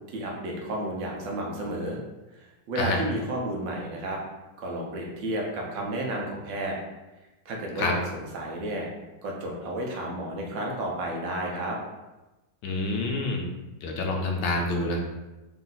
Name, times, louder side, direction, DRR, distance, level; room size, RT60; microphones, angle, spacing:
voice 1, 0.1-2.0 2.7-4.2 4.6-6.8 7.4-8.9 9.2-11.8, right 1 dB, 85° right, -1 dB, 1.5 m, -32 dB
voice 2, 12.6-13.5 13.8-15.0, left 2 dB, 75° left, 1 dB, 1.2 m, -27 dB
3.8 x 2.5 x 3.9 m, 1.1 s
omnidirectional pair, 2.0 m